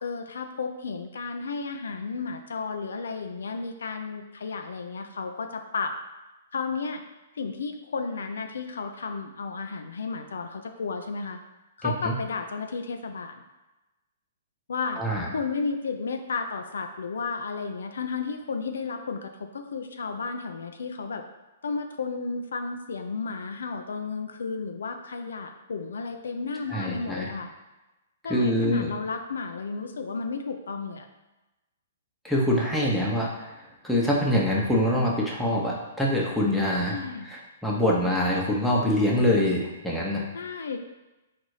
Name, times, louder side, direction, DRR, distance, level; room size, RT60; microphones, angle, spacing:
voice 1, 0.0-5.9 6.5-7.0 7.3-11.4 11.8-13.4 14.7-15.0 15.3-21.2 21.6-27.5 28.2-31.1 36.9-37.3 40.3-40.8, left 4 dB, 80° left, 6 dB, 0.4 m, -33 dB
voice 2, 11.8-12.2 15.0-15.3 26.7-27.3 28.3-28.9 32.2-33.5 33.8-36.9 37.2-40.2, left 1 dB, ahead, -5 dB, 0.9 m, -24 dB
4.0 x 2.6 x 4.7 m, 1.1 s
hypercardioid pair, 130°, 0 cm